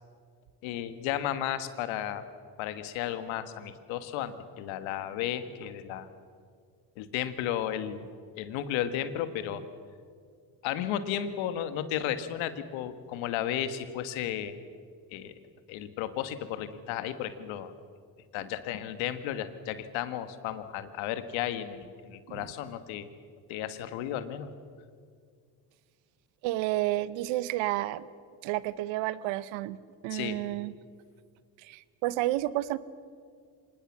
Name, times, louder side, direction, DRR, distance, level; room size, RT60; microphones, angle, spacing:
voice 1, 0.6-2.2 2.6-6.1 7.0-8.1 8.3-9.6 10.6-14.5 15.1-15.3 15.7-17.7 18.3-23.1 23.5-24.5 30.1-30.4, left 11 dB, 80° left, 11 dB, 1.6 m, -34 dB
voice 2, 26.4-28.1 28.4-30.7 31.6-32.8, right 16 dB, 80° right, 17 dB, 1.0 m, -31 dB
25.0 x 20.0 x 7.2 m, 2.1 s
supercardioid pair, 70°, 46 cm